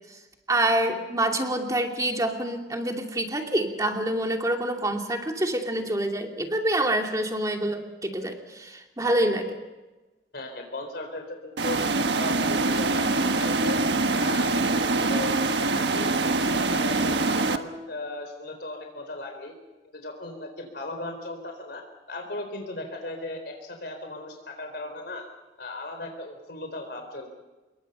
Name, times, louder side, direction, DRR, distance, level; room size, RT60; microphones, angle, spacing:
voice 1, 0.5-9.6, right 1 dB, 20° right, 2 dB, 2.7 m, -26 dB
voice 2, 10.3-11.8 12.1-13.8 14.2-16.1 16.5-19.5 19.8-25.3 25.6-27.3, left 2 dB, 65° left, 4 dB, 4.2 m, -37 dB
sound 1, 11.6-17.6, right 3 dB, 75° right, 1.4 m, -24 dB
27.5 x 22.5 x 5.6 m, 1.1 s
head